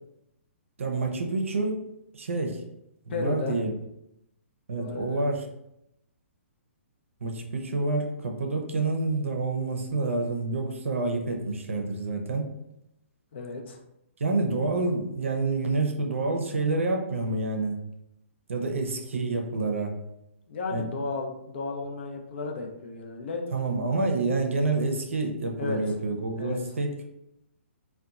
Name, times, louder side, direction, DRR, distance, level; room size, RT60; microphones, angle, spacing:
voice 1, 0.8-1.8 2.1-2.6 3.1-3.7 4.7-5.5 7.2-12.5 14.2-17.8 18.5-20.0 20.7-20.8 23.5-27.0, right 3 dB, 75° right, 3 dB, 0.5 m, -28 dB
voice 2, 3.1-3.6 4.8-5.2 13.3-13.8 20.5-23.4 25.6-25.8 26.4-26.6, left 4 dB, 55° left, 2 dB, 0.5 m, -34 dB
2.7 x 2.2 x 2.3 m, 0.83 s
figure-of-eight pair, 130°, 7 cm